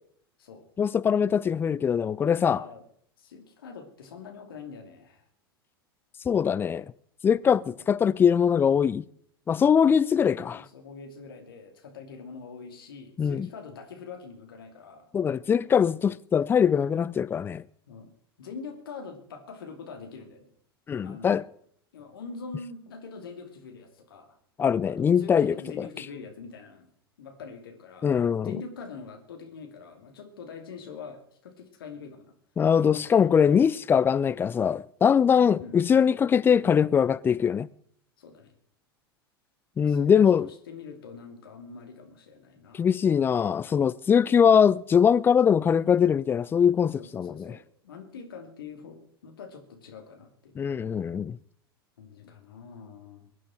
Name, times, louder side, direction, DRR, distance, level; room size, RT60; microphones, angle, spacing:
voice 1, 0.8-2.6 6.3-6.8 7.2-9.0 9.5-10.6 13.2-13.5 15.1-17.6 20.9-21.4 24.6-25.9 28.0-28.5 32.6-37.7 39.8-40.5 42.7-47.5 50.6-51.4, left 7 dB, 15° left, 0.4 m, -22 dB
voice 2, 2.4-2.8 3.2-5.2 10.2-15.1 17.9-18.1 18.4-20.5 21.0-21.5 21.9-24.4 24.9-26.9 27.2-28.1 28.4-32.3 32.9-33.1 35.6-35.8 38.2-38.5 39.8-43.0 47.0-50.5 52.0-53.3, left 5 dB, 65° left, 2.8 m, -44 dB
22.5 x 9.3 x 4.5 m
figure-of-eight pair, 85°, 13 cm